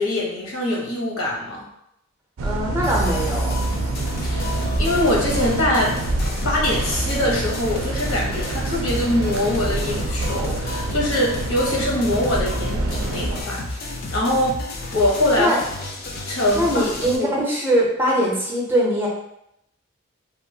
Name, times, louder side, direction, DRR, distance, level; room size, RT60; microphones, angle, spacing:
voice 1, 0.0-1.7 4.2-5.9 6.4-13.8 14.1-14.6 14.9-15.5 16.3-16.8 17.2-17.3, left 1 dB, 80° left, -3 dB, 0.9 m, -23 dB
voice 2, 2.4-3.6 15.4-15.6 16.5-19.1, equal, 10° right, -3 dB, 0.5 m, -21 dB
sound 1, 2.4-13.4, right 2 dB, 75° right, 0.4 m, -26 dB
sound 2, 2.8-17.2, left 2 dB, 45° left, 0.4 m, -31 dB
2.9 x 2.2 x 2.6 m, 0.79 s
head